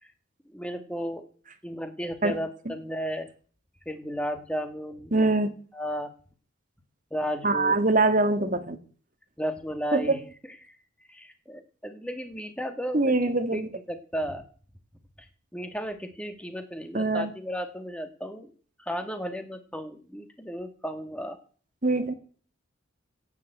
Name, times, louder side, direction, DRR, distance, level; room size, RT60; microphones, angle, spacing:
voice 1, 0.5-1.3 1.6-3.3 3.9-5.3 5.7-6.1 7.1-7.7 9.4-10.2 10.6-10.7 11.1-13.1 13.5-13.6 13.9-14.4 15.5-18.5 18.8-21.4, equal, 5° left, 7 dB, 2.1 m, -34 dB
voice 2, 5.1-5.6 7.4-8.8 9.9-10.2 12.9-13.7 16.9-17.3 21.8-22.1, right 2 dB, 40° right, 9 dB, 1.9 m, -23 dB
17.5 x 7.4 x 8.0 m, 0.43 s
head